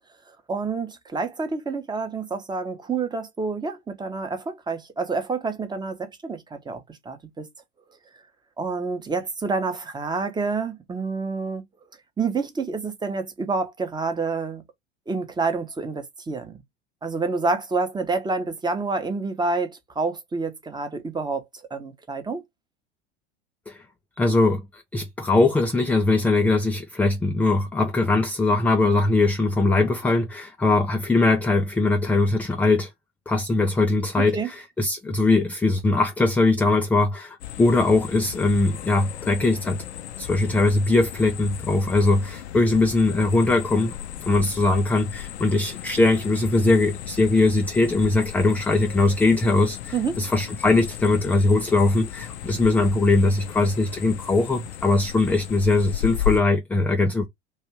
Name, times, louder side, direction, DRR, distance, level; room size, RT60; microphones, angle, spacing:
voice 1, 0.5-7.5 8.6-11.6 12.2-14.6 15.1-16.6 17.0-21.4 21.7-22.4 34.2-34.5 49.9-50.2, right 4 dB, 10° right, 0.9 m, -28 dB
voice 2, 24.2-32.9 33.3-39.8 40.2-43.9 44.3-57.3, left 2 dB, 5° left, 0.4 m, -21 dB
sound 1, 37.4-56.4, left 11 dB, 65° left, 0.7 m, -35 dB
3.3 x 2.6 x 4.5 m
figure-of-eight pair, 85°, 34 cm